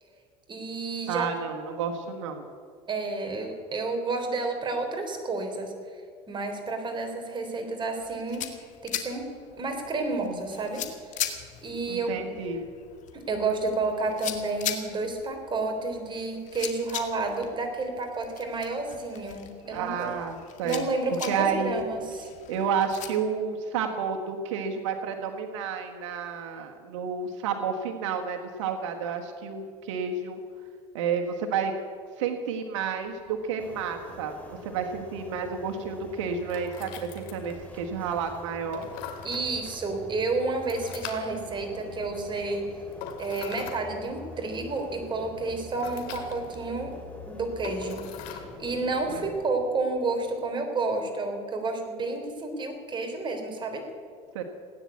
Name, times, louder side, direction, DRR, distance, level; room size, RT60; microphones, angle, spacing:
voice 1, 0.5-1.3 2.9-5.7 6.3-8.4 8.8-9.3 9.6-10.8 11.6-12.4 13.1-20.1 20.6-22.3 39.2-42.7 43.2-46.9 47.3-48.0 48.3-53.9, right 3 dB, 30° right, 4 dB, 3.5 m, -30 dB
voice 2, 1.1-2.5 11.9-12.6 19.7-20.9 21.3-21.8 22.5-30.4 30.9-31.7 32.2-38.9 49.1-49.2 54.3-54.4, right 6 dB, 90° right, 4 dB, 1.4 m, -31 dB
sound 1, 8.0-23.1, left 10 dB, 55° left, 1.9 m, -40 dB
sound 2, 33.0-50.5, left 8 dB, 70° left, 2.3 m, -46 dB
sound 3, 33.6-49.4, left 1 dB, 10° left, 3.7 m, -45 dB
17.0 x 9.8 x 8.5 m, 2.1 s
supercardioid pair, 100°, 15 cm